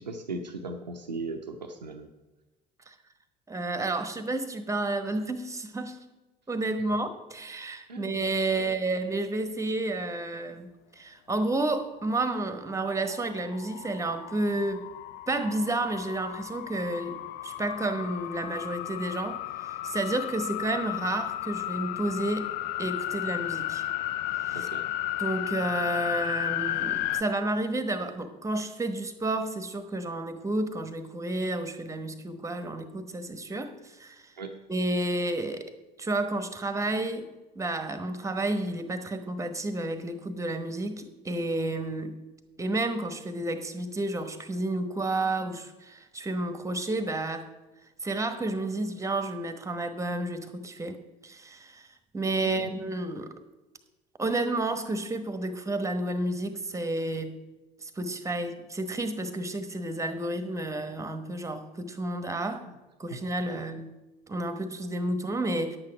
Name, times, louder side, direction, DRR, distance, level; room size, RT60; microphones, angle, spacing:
voice 1, 0.0-2.1 6.8-6.9 7.9-8.2 8.6-8.7 24.5-24.8 34.4-34.6 52.4-52.8 62.5-62.7 63.1-63.6, right 3 dB, 85° right, 4 dB, 0.6 m, -38 dB
voice 2, 3.5-6.0 6.5-10.7 11.0-14.9 15.3-17.2 17.4-19.4 19.8-22.5 22.8-23.8 24.5-24.7 25.2-34.3 34.7-35.7 36.0-37.3 37.5-42.2 42.6-47.5 48.0-51.0 51.2-51.9 52.1-53.3 54.2-57.4 57.8-62.6 63.0-63.9 64.3-65.8, right 2 dB, 15° right, 9 dB, 1.1 m, -31 dB
sound 1, 12.8-27.2, left 14 dB, 45° left, 0.4 m, -34 dB
10.0 x 8.8 x 5.1 m, 1.1 s
figure-of-eight pair, 65°, 21 cm